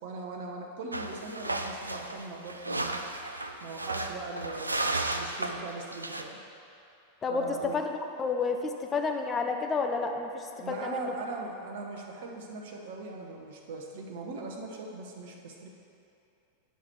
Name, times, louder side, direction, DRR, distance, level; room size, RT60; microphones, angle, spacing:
voice 1, 0.0-3.0 3.6-6.4 7.3-7.8 10.6-15.7, right 3 dB, 55° right, 1 dB, 0.8 m, -40 dB
sound 1, 0.9-6.2, right 2 dB, 80° right, 0.3 m, -34 dB
voice 2, 8.2-11.1, left 4 dB, 20° left, 4 dB, 0.6 m, -30 dB
9.5 x 5.8 x 2.9 m, 2.7 s
figure-of-eight pair, 90°, 0 cm